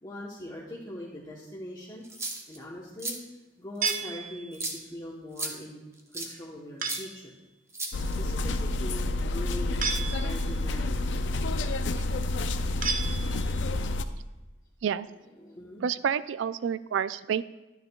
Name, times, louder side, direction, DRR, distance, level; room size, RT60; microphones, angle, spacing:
voice 1, 0.0-2.0 2.5-3.2 3.6-7.3 7.9-11.0 15.1-15.8, left 1 dB, 25° left, -4 dB, 0.9 m, -42 dB
sound 1, 2.0-2.6 3.0-3.2 3.8-4.0 4.5-4.8 5.4-5.5 6.1-6.3 6.9-7.0 7.7-8.3, right 2 dB, 15° right, 0.8 m, -34 dB
sound 2, 3.8-4.8 6.8-7.3 9.8-10.6 12.8-13.7, right 5 dB, 45° right, 0.6 m, -33 dB
sound 3, 7.9-14.0, left 2 dB, 75° left, 0.5 m, -29 dB
voice 2, 15.8-17.4, right 7 dB, 85° right, 16 dB, 0.3 m, -29 dB
11.5 x 9.5 x 2.3 m, 1.1 s
head